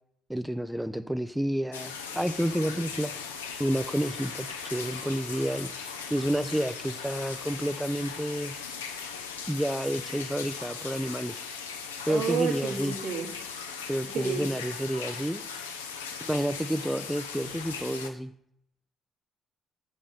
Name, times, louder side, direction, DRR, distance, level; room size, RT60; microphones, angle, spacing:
voice 1, 0.3-3.1 3.6-8.5 9.5-11.4 12.1-12.9 13.9-15.4 16.2-18.3, equal, 5° right, 9 dB, 0.4 m, -30 dB
sound 1, 1.7-18.1, left 6 dB, 80° left, 0.7 m, -38 dB
voice 2, 12.1-13.3 14.1-14.4, right 6 dB, 60° right, 3 dB, 1.5 m, -31 dB
7.4 x 5.3 x 7.0 m, 0.69 s
figure-of-eight pair, 45°, 0 cm